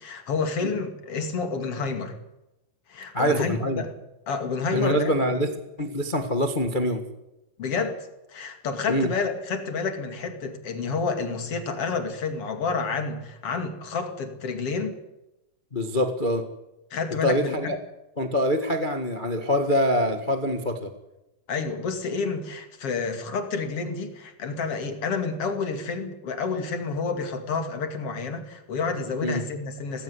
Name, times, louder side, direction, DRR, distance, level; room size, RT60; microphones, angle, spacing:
voice 1, 0.0-2.2 2.9-3.9 4.3-5.1 7.6-8.0 8.3-14.9 16.9-17.7 21.5-30.0, left 4 dB, 45° left, 7 dB, 3.1 m, -29 dB
voice 2, 3.1-3.8 4.7-5.5 5.8-7.0 8.9-9.1 15.7-16.4 17.2-17.8 18.2-20.9 29.2-29.4, equal, 80° left, 6 dB, 0.4 m, -24 dB
18.5 x 17.0 x 9.6 m, 0.94 s
omnidirectional pair, 4.1 m